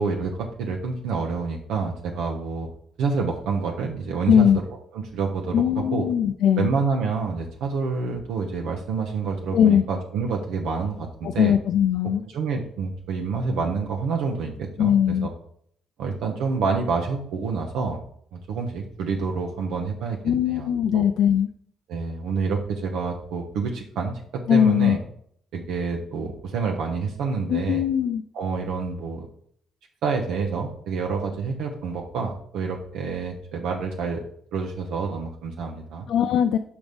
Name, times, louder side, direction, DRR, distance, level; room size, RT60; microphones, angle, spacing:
voice 1, 0.0-2.7 3.0-5.6 5.9-6.1 6.6-11.5 12.3-14.9 15.2-15.3 16.0-18.0 18.3-21.0 21.9-25.0 25.5-27.8 28.3-29.3 30.0-34.2 34.5-36.1, right 4 dB, 90° right, 1 dB, 0.8 m, -28 dB
voice 2, 4.3-4.6 5.5-6.7 9.5-9.8 11.2-12.2 14.8-15.3 20.2-21.5 24.5-25.0 27.5-28.2 36.1-36.6, left 9 dB, 80° left, 7 dB, 0.3 m, -20 dB
5.3 x 4.8 x 5.2 m, 0.65 s
cardioid pair, 90°, 0 cm